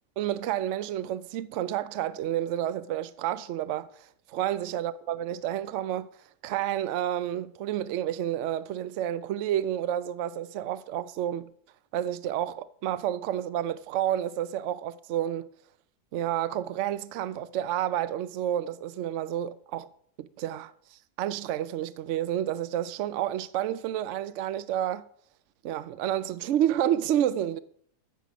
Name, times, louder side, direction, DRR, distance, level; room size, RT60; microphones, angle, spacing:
voice 1, 0.2-6.1 6.4-11.5 11.9-15.5 16.1-19.9 20.2-25.0 25.6-27.6, right 11 dB, 75° right, 0.6 m, -30 dB
14.5 x 5.8 x 6.1 m
omnidirectional pair, 1.8 m